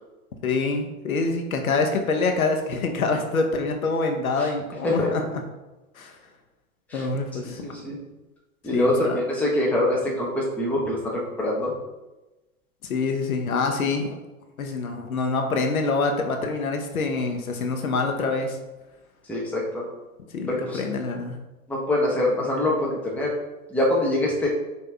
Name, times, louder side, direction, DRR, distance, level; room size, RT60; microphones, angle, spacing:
voice 1, 0.4-5.4 6.0-6.2 6.9-7.8 8.7-9.2 12.8-14.2 14.6-18.6 20.3-21.4, left 3 dB, 70° left, 4 dB, 0.9 m, -26 dB
voice 2, 7.4-8.0 8.6-11.7 19.3-19.8 20.5-20.8 21.7-23.3 23.7-24.5, left 1 dB, 5° left, -4 dB, 0.8 m, -24 dB
5.5 x 2.8 x 3.4 m, 1.1 s
figure-of-eight pair, 105°, 44 cm